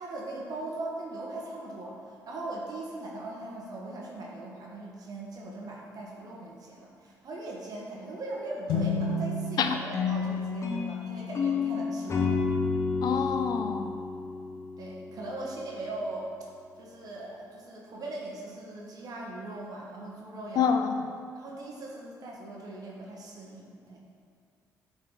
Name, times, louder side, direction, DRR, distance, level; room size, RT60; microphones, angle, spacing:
voice 1, 0.0-12.3 14.8-16.3 16.8-20.7 21.3-24.0, right 2 dB, 60° right, -3 dB, 1.5 m, -40 dB
sound 1, 8.7-12.2, left 2 dB, 85° left, 1.0 m, -34 dB
sound 2, 9.9-15.1, left 5 dB, 40° left, 1.1 m, -30 dB
voice 2, 13.0-14.0 20.6-20.9, left 7 dB, 70° left, 7 dB, 0.6 m, -27 dB
8.7 x 4.4 x 3.9 m, 2.2 s
supercardioid pair, 65°, 7 cm